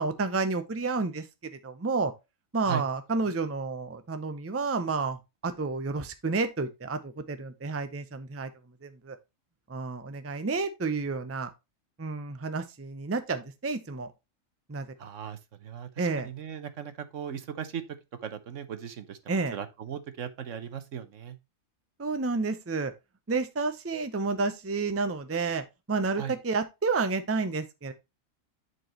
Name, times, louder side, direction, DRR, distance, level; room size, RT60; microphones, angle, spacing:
voice 1, 0.0-2.1 2.5-8.5 8.8-9.2 9.7-11.5 12.0-14.1 14.7-14.9 16.0-16.3 19.3-19.6 22.0-22.9 23.3-27.9, right 4 dB, 15° right, 0.6 m, -30 dB
voice 2, 15.0-17.8 18.2-19.2 19.5-21.4 26.2-26.4, right 8 dB, 70° right, 1.3 m, -38 dB
10.5 x 4.6 x 3.0 m
omnidirectional pair, 1.4 m